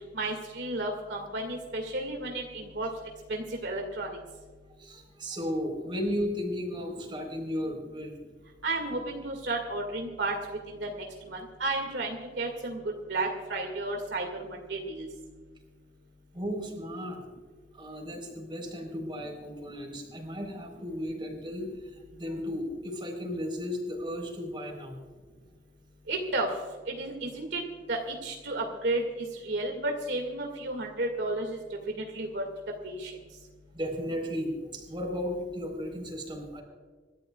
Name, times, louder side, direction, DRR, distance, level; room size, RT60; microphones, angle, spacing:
voice 1, 0.1-2.9 3.3-4.2 8.6-10.3 10.7-12.8 13.1-15.1 26.1-26.5 26.9-27.6 27.9-29.0 29.4-31.6 32.0-32.4 32.8-33.1, right 2 dB, 70° right, 2 dB, 2.1 m, -32 dB
voice 2, 4.8-8.1 16.3-17.2 17.7-25.0 33.7-36.6, equal, 30° right, 2 dB, 4.0 m, -35 dB
27.0 x 13.0 x 2.4 m, 1.4 s
head